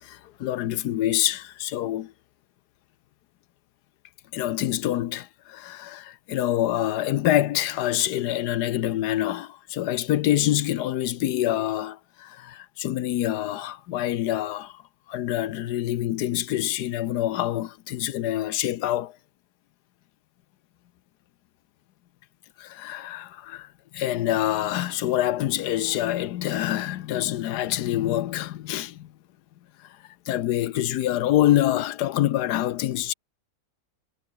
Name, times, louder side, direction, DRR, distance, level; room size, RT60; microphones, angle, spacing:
voice 1, 0.0-2.1 4.3-14.8 15.1-19.2 22.6-29.1 29.8-30.0 30.3-33.1, left 13 dB, 90° left, 1.3 m, -26 dB
omnidirectional pair, 1.7 m